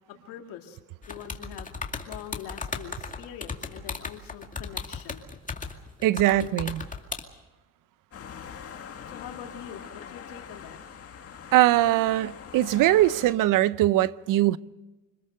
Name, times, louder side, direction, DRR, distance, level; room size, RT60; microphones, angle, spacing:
voice 1, 0.3-0.8 1.1-1.7 2.1-5.3 6.3-6.5 9.1-10.8, left 10 dB, 90° left, 2.2 m, -43 dB
sound 1, 1.0-7.2, left 4 dB, 25° left, 2.3 m, -36 dB
voice 2, 6.0-6.8 11.5-14.6, right 15 dB, 70° right, 0.7 m, -21 dB
sound 2, 8.1-13.3, left 7 dB, 45° left, 2.2 m, -43 dB
26.5 x 20.0 x 6.6 m
cardioid pair, 85°, 33 cm